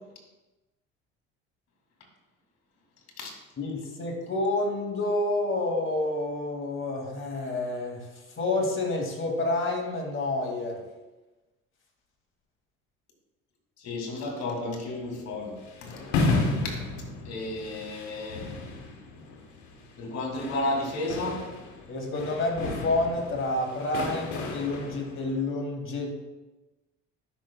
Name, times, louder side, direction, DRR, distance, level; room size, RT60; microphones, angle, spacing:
voice 1, 3.6-8.1 8.4-10.8 21.9-26.1, left 2 dB, 40° left, 1 dB, 2.3 m, -29 dB
voice 2, 13.8-15.5 15.8-16.0 16.6-16.8 17.2-18.5 20.0-21.4, left 2 dB, 55° left, 1 dB, 2.5 m, -32 dB
sound 1, 14.9-25.4, left 3 dB, 85° left, 1.3 m, -33 dB
11.5 x 6.0 x 2.3 m, 1.1 s
hypercardioid pair, 70°, 33 cm